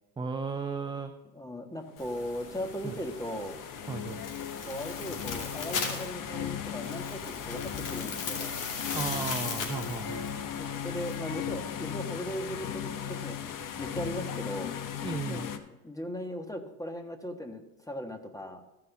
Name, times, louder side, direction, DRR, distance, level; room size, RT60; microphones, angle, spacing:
voice 1, 0.2-1.1 2.8-3.0 3.9-4.2 8.9-10.2 15.0-15.5, right 5 dB, 10° right, 7 dB, 0.5 m, -35 dB
voice 2, 1.3-3.6 4.6-8.6 10.5-14.7 15.3-15.5 15.8-18.6, equal, 5° left, 5 dB, 1.5 m, -38 dB
sound 1, 2.0-11.1, left 5 dB, 70° left, 2.8 m, -39 dB
sound 2, 2.1-15.6, left 8 dB, 45° left, 1.1 m, -37 dB
15.0 x 5.9 x 3.6 m, 1.0 s
hypercardioid pair, 80°, 46 cm